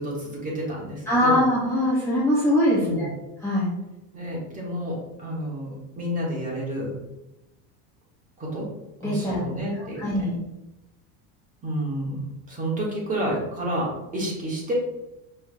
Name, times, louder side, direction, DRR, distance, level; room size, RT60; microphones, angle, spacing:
voice 1, 0.0-1.4 2.7-3.1 4.1-5.7 6.0-6.9 8.4-8.7 9.0-10.0 11.6-14.7, equal, 20° right, -4 dB, 1.1 m, -30 dB
voice 2, 1.1-3.1 3.4-3.7 9.0-9.4 10.0-10.4, equal, 5° left, -8 dB, 0.7 m, -22 dB
5.5 x 3.4 x 2.5 m, 0.92 s
cardioid pair, 155°, 42 cm